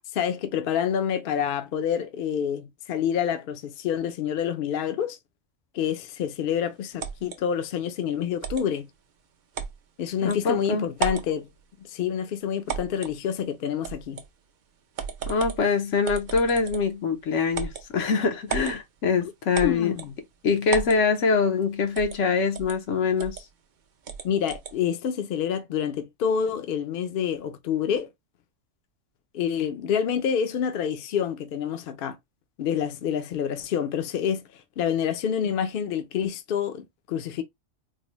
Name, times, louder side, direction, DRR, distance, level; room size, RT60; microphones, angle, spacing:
voice 1, 0.1-5.2 5.7-8.9 10.0-11.5 11.9-14.2 19.6-20.1 24.2-28.1 29.3-32.2 32.6-37.4, left 8 dB, 60° left, 0.6 m, -27 dB
sound 1, 7.0-7.4 8.4-8.7 9.5-9.8 10.3-10.4 10.9-11.3 12.7-13.2 13.8-14.3 15.0-15.6 16.0-16.9 17.5-17.8 18.5-18.8 19.5-20.1 20.7-21.0 22.0-22.2 22.5-22.8 23.2-23.4 24.1-24.7, right 7 dB, 55° right, 0.6 m, -33 dB
voice 2, 10.2-10.9 15.3-19.9 20.4-23.4, left 5 dB, 80° left, 1.1 m, -24 dB
3.8 x 2.0 x 3.0 m
omnidirectional pair, 1.2 m